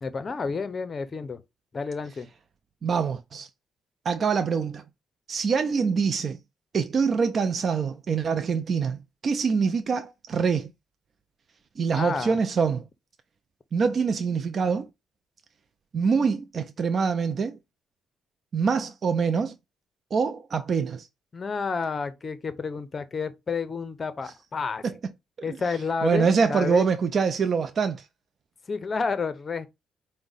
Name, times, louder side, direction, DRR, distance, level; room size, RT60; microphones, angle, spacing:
voice 1, 0.0-1.4 1.7-2.3 11.9-12.4 21.3-24.8 25.4-26.9 28.7-29.7, left 5 dB, 35° left, 0.6 m, -30 dB
voice 2, 2.8-3.5 4.1-4.8 5.3-6.4 6.7-10.7 11.8-12.8 13.7-14.9 15.9-17.6 18.5-19.5 20.1-21.1 24.8-24.9 26.0-28.1, right 5 dB, 50° right, 0.4 m, -25 dB
4.5 x 2.1 x 3.9 m
cardioid pair, 90°, 0 cm